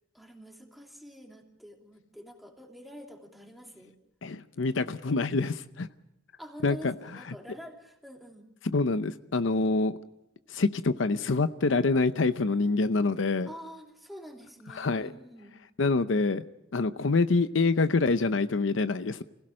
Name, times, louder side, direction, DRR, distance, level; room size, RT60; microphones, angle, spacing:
voice 1, 0.1-3.9 6.4-8.5 13.5-15.5, equal, ahead, 1 dB, 2.9 m, -47 dB
voice 2, 4.2-5.9 6.6-6.9 8.6-9.9 10.5-13.5 14.7-15.1 15.8-16.4 16.7-19.2, left 3 dB, 75° left, 12 dB, 0.7 m, -26 dB
26.0 x 16.5 x 6.4 m, 0.90 s
head